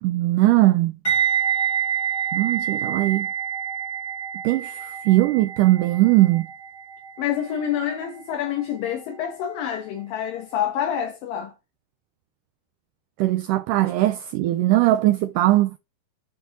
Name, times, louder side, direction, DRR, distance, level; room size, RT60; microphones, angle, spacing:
voice 1, 0.0-1.0 2.3-3.3 4.4-6.5 13.2-15.8, right 17 dB, 90° right, 1.8 m, -20 dB
sound 1, 1.0-10.0 10.3-10.6, right 8 dB, 15° left, 1.9 m, -28 dB
voice 2, 7.2-11.5, left 9 dB, 70° left, 2.8 m, -27 dB
7.7 x 4.4 x 3.9 m
omnidirectional pair, 4.3 m